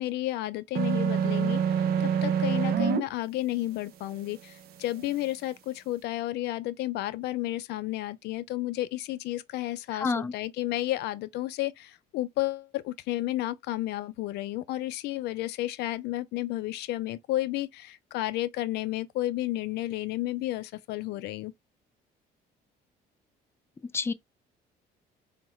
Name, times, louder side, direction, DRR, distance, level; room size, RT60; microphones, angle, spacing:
voice 1, 0.0-21.5, left 16 dB, 75° left, 0.4 m, -32 dB
sound 1, 0.7-3.0, right 7 dB, 65° right, 0.6 m, -25 dB
voice 2, 9.9-10.3 23.9-24.1, left 4 dB, 15° left, 0.4 m, -28 dB
4.5 x 2.1 x 3.0 m
cardioid pair, 110°, 17 cm